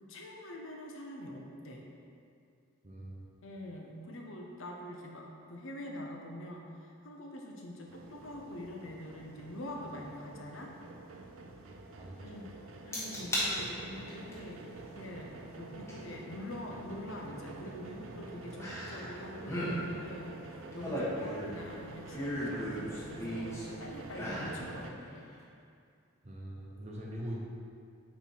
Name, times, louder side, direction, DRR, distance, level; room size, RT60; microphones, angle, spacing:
voice 1, 0.0-1.8 3.4-10.7 12.2-12.6 12.8-14.7 15.0-20.4 20.7-25.3, left 1 dB, 70° left, 0 dB, 0.8 m, -45 dB
voice 2, 2.8-3.2 11.6-12.3 26.2-27.3, right 1 dB, 30° right, -4 dB, 0.6 m, -43 dB
sound 1, 7.9-24.9, right 3 dB, 70° right, 0.5 m, -48 dB
sound 2, 12.9-13.5 13.9-14.3 15.9-16.0 18.6-19.1 19.4-19.8 20.5-21.6 22.1-23.7 24.1-24.6 25.0-25.1, equal, 15° left, 1.1 m, -35 dB
4.5 x 4.3 x 5.4 m, 2.4 s
head